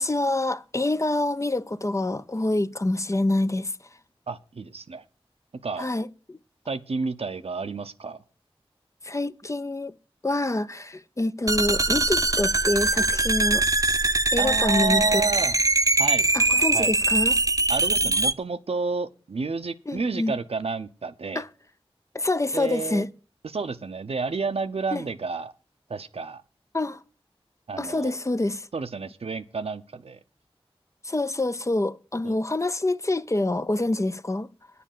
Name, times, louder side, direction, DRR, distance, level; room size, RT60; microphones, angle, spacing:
voice 1, 0.0-3.7 5.8-6.4 9.0-9.9 10.2-13.6 14.3-15.2 16.3-17.4 19.9-20.3 21.4-21.5 22.1-23.1 24.9-25.0 26.7-27.0 27.8-28.7 31.0-34.5, left 2 dB, 30° left, 0.6 m, -26 dB
voice 2, 4.3-5.0 5.6-5.9 6.7-8.2 14.4-15.6 16.0-16.3 16.7-16.9 17.7-21.4 22.5-23.0 23.4-25.5 25.9-26.4 27.7-28.1 28.7-30.2 32.2-32.4, right 4 dB, 75° right, 0.8 m, -30 dB
sound 1, 11.5-18.3, right 2 dB, 35° right, 0.6 m, -22 dB
9.9 x 6.9 x 7.5 m
wide cardioid pair, 45°, 10 cm